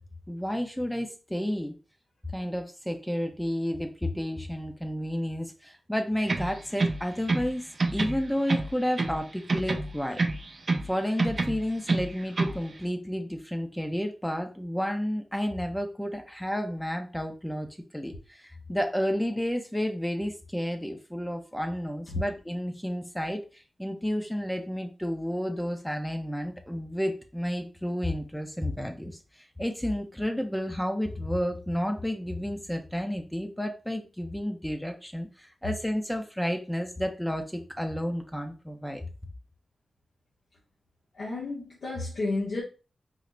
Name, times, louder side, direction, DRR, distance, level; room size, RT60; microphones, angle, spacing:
voice 1, 0.3-1.8 2.3-7.6 7.9-10.2 10.8-17.7 17.9-39.1, equal, 5° left, 0.6 m, -31 dB
sound 1, 6.2-7.5 7.8-9.2 9.5-10.9 11.2-12.6, right 3 dB, 60° right, 0.5 m, -28 dB
voice 2, 41.1-42.6, left 2 dB, 80° left, 0.8 m, -31 dB
3.7 x 2.0 x 3.3 m
cardioid pair, 50°, 0 cm